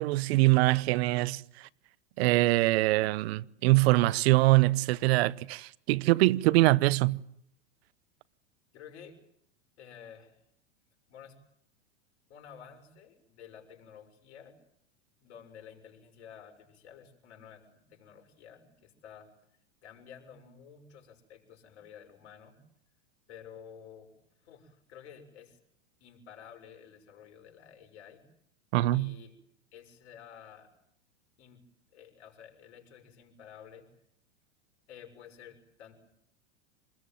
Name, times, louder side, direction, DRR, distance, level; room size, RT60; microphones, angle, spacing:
voice 1, 0.0-1.7 2.2-7.2 28.7-29.1, right 19 dB, 60° right, 1.0 m, -24 dB
voice 2, 8.7-9.2 9.8-10.4 11.1-11.4 12.3-14.6 15.2-19.3 19.8-22.6 23.3-24.1 24.4-25.6 26.0-28.2 28.9-29.3 29.7-30.7 31.4-33.9 34.9-35.9, left 8 dB, 65° left, 6.5 m, -52 dB
27.0 x 20.5 x 9.3 m
hypercardioid pair, 110°, 36 cm